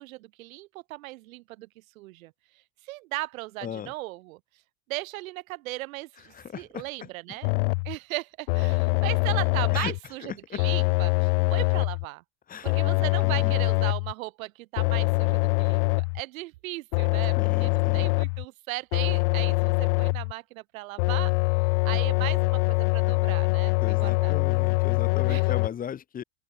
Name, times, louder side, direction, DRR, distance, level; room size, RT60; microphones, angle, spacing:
voice 1, 0.0-4.4 4.9-7.5 7.8-12.2 12.6-21.3 21.8-24.3 25.3-25.4, right 20 dB, 90° right, 1.1 m, -37 dB
voice 2, 3.6-3.9 6.2-7.4 9.7-10.6 12.5-13.6 17.4-18.1 23.8-26.2, left 8 dB, 20° left, 1.1 m, -37 dB
sound 1, 7.4-8.0 8.5-10.0 10.6-12.0 12.7-14.1 14.8-16.2 16.9-18.4 18.9-20.3 21.0-25.7, left 29 dB, 65° left, 0.5 m, -24 dB
open air
supercardioid pair, 145°, 40 cm